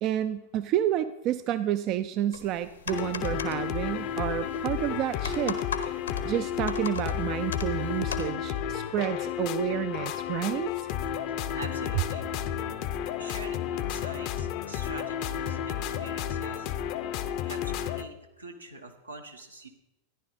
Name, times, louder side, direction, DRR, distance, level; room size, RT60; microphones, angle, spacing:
voice 1, 0.0-5.6 6.2-10.9, right 12 dB, 40° right, 12 dB, 0.4 m, -30 dB
sound 1, 2.3-8.3, left 6 dB, 70° left, 1.1 m, -39 dB
sound 2, 2.9-18.0, left 9 dB, 45° left, 0.7 m, -32 dB
voice 2, 11.5-12.3 13.2-16.7 17.4-19.7, right 2 dB, 80° right, 2 dB, 1.4 m, -44 dB
14.0 x 10.5 x 4.1 m, 0.90 s
figure-of-eight pair, 90°, 0 cm